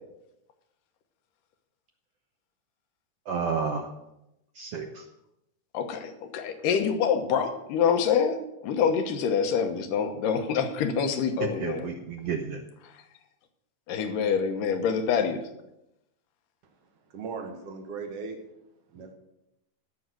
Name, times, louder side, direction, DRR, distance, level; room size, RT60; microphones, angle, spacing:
voice 1, 3.3-3.9 4.5-5.0 11.6-12.6, right 5 dB, 70° right, 3 dB, 1.5 m, -31 dB
voice 2, 5.7-8.4 8.6-11.9 13.9-15.4, left 7 dB, 75° left, 7 dB, 2.7 m, -26 dB
voice 3, 17.1-18.4 18.9-19.1, right 5 dB, 50° right, 4 dB, 2.4 m, -37 dB
15.5 x 6.4 x 6.3 m, 0.87 s
omnidirectional pair, 3.8 m